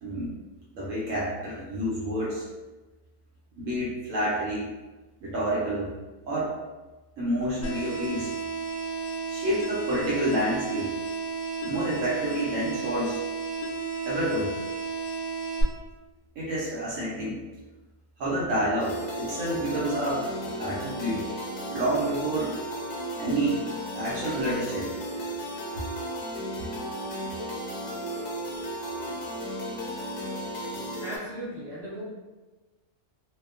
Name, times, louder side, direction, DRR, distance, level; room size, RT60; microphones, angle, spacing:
voice 1, 0.0-0.4 0.7-2.4 3.6-4.7 5.2-5.9 6.3-6.5 7.2-8.3 9.3-10.9 11.6-13.2 14.0-14.5 16.4-17.4 18.2-21.2 21.7-22.6 23.2-23.6 23.9-24.9 29.0-29.1, right 1 dB, 65° right, -7 dB, 0.8 m, -29 dB
sound 1, 7.6-15.6, right 4 dB, 70° left, 0.6 m, -33 dB
sound 2, 18.8-31.2, equal, 90° left, 1.2 m, -34 dB
voice 2, 30.7-32.0, equal, 25° left, -11 dB, 0.6 m, -38 dB
2.8 x 2.0 x 2.3 m, 1.2 s
omnidirectional pair, 1.6 m